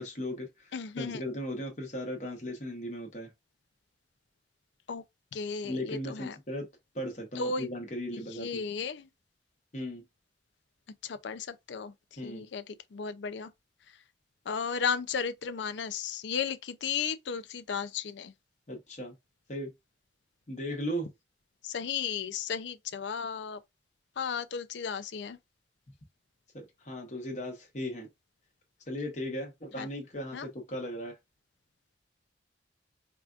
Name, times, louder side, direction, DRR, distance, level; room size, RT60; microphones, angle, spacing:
voice 1, 0.0-3.3 5.6-6.7 6.9-8.6 9.7-10.0 12.2-12.4 18.7-19.1 19.5-19.7 20.5-21.1 26.5-28.1 28.9-31.2, equal, 40° left, 1.0 m, -37 dB
voice 2, 0.7-1.2 4.9-5.0 5.3-6.4 7.4-7.7 8.1-9.1 11.0-13.5 14.5-18.3 21.6-23.6 24.2-25.4 29.8-29.9 30.3-30.5, left 6 dB, 75° left, 0.5 m, -34 dB
4.8 x 2.5 x 2.4 m
head